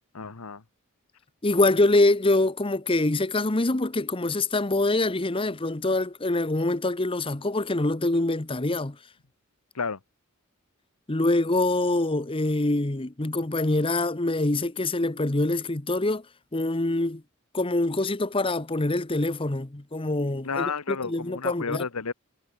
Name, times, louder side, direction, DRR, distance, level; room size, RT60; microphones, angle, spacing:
voice 1, 0.1-0.6 9.7-10.0 20.4-22.1, left 5 dB, 90° left, 1.2 m, -31 dB
voice 2, 1.4-9.0 11.1-16.2 16.5-17.2 17.5-21.8, left 2 dB, 25° left, 1.0 m, -25 dB
head